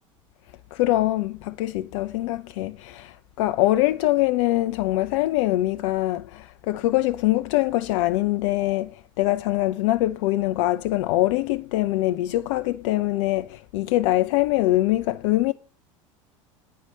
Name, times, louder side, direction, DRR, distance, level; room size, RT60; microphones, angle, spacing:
voice 1, 0.7-15.5, left 16 dB, 65° left, 0.5 m, -23 dB
9.6 x 5.6 x 7.2 m
hypercardioid pair, 80°, 17 cm